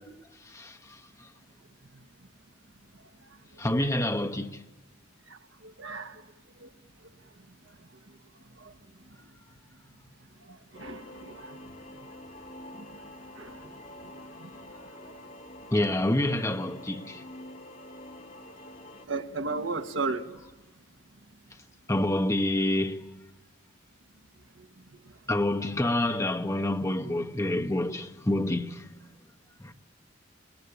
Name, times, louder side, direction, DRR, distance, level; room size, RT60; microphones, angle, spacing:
voice 1, 0.5-1.0 3.6-4.6 15.7-17.2 21.9-23.0 25.3-28.9 29.6-29.7, left 1 dB, 15° left, 1.2 m, -27 dB
voice 2, 3.7-4.1 5.3-6.2 6.6-6.7 8.6-8.7 10.5-11.7 12.8-12.9 13.4-13.7 14.1-14.5 15.0-15.1 19.1-20.3, right 3 dB, 75° right, 1.6 m, -36 dB
sound 1, 10.7-19.0, left 1 dB, 45° left, 2.4 m, -46 dB
26.5 x 22.0 x 10.0 m
head